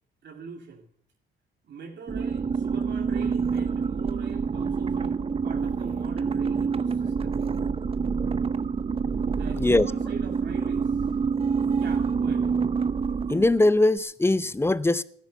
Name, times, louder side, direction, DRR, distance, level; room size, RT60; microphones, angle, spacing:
voice 1, 0.2-0.9 1.6-5.2 5.4-7.5 9.3-11.0 11.8-12.5, right 6 dB, 60° right, 2.4 m, -42 dB
sound 1, 2.1-13.8, right 5 dB, 30° right, 0.7 m, -27 dB
voice 2, 9.5-9.9 13.3-15.0, left 2 dB, 10° left, 0.6 m, -21 dB
13.5 x 10.5 x 6.7 m
cardioid pair, 90°, 20 cm